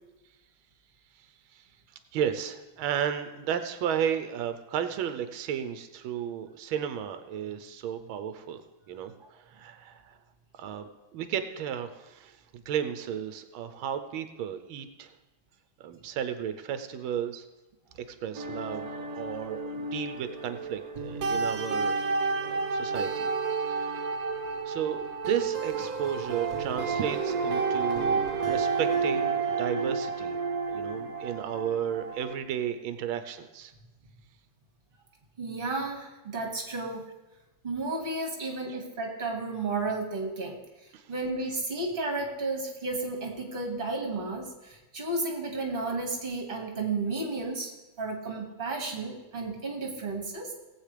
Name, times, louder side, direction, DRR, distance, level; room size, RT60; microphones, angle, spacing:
voice 1, 2.1-10.2 10.6-15.1 15.8-17.4 18.1-22.0 22.4-23.3 23.6-24.1 24.6-30.4 30.7-33.7 38.7-38.8 40.9-41.0, right 9 dB, 90° right, 9 dB, 1.5 m, -33 dB
sound 1, 18.3-32.4, right 4 dB, 55° right, 1.3 m, -30 dB
voice 2, 35.4-37.1 37.6-40.6 41.1-47.7 48.0-50.5, right 3 dB, 25° right, 1 dB, 2.0 m, -33 dB
18.5 x 8.1 x 3.3 m, 1.1 s
omnidirectional pair, 2.2 m